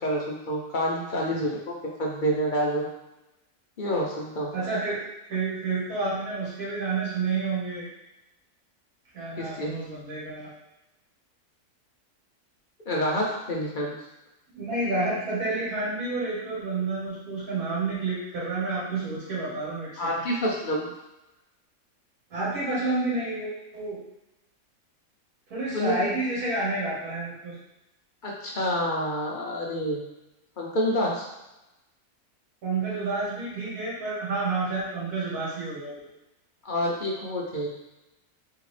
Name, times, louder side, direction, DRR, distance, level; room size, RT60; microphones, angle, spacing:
voice 1, 0.0-2.9 3.8-4.5 9.4-9.7 12.9-14.0 20.0-20.9 25.7-26.1 28.2-30.0 30.6-31.2 36.6-37.7, equal, 45° left, -3 dB, 0.7 m, -28 dB
voice 2, 4.5-5.0 5.3-7.9 9.1-10.5 14.5-20.0 22.3-24.0 25.5-27.5 32.6-36.0, right 3 dB, 65° right, -9 dB, 2.0 m, -29 dB
3.7 x 3.4 x 3.3 m, 0.93 s
omnidirectional pair, 1.6 m